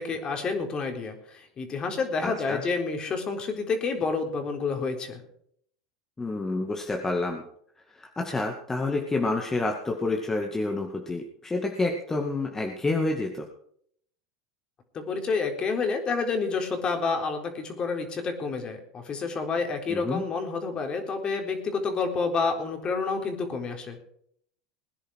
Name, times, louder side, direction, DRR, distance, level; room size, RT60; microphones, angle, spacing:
voice 1, 0.0-5.2 14.9-24.0, left 4 dB, 35° left, 4 dB, 3.9 m, -29 dB
voice 2, 2.2-2.6 6.2-7.4 8.0-13.5 19.9-20.2, left 2 dB, 15° left, 2 dB, 2.2 m, -28 dB
21.0 x 10.0 x 4.9 m, 0.66 s
hypercardioid pair, 95°, 3 cm